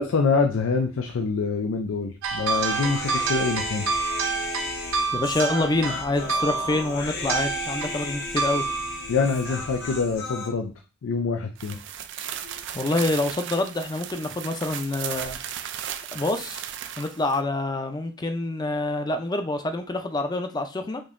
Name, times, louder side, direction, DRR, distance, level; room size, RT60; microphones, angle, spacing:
voice 1, 0.0-3.9 9.1-10.7 11.0-11.8 12.4-12.6, left 4 dB, 85° left, 4 dB, 0.4 m, -25 dB
sound 1, 2.2-10.1, right 5 dB, 85° right, 0.7 m, -29 dB
Human voice, 2.5-10.5, left 4 dB, 55° left, 0.8 m, -35 dB
voice 2, 5.1-8.6 12.7-15.4 16.1-16.7 17.0-21.0, left 2 dB, 20° left, 6 dB, 0.5 m, -26 dB
sound 2, 11.5-17.4, right 10 dB, 60° right, 0.4 m, -36 dB
5.1 x 2.7 x 2.5 m, 0.34 s
head